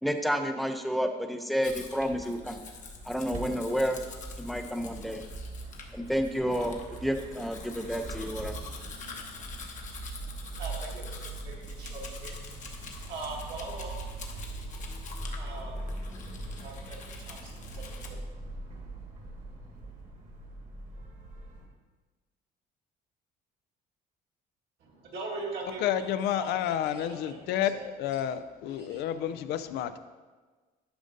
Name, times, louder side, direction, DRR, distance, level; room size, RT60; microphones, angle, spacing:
voice 1, 0.0-2.6 3.1-4.0 4.4-5.2 5.9-8.5, equal, ahead, 6 dB, 0.6 m, -30 dB
Domestic sounds home sounds, 1.6-18.1, left 5 dB, 50° left, 1.0 m, -46 dB
sound 1, 2.0-21.7, right 2 dB, 45° right, 1.4 m, -41 dB
voice 2, 10.1-14.0 15.3-15.8 16.6-19.8 24.8-27.9 28.8-29.0, right 3 dB, 70° right, -3 dB, 1.6 m, -43 dB
voice 3, 25.8-27.7 28.0-30.0, left 10 dB, 80° left, 12 dB, 0.4 m, -30 dB
11.0 x 5.1 x 2.6 m, 1.3 s
cardioid pair, 110°, 17 cm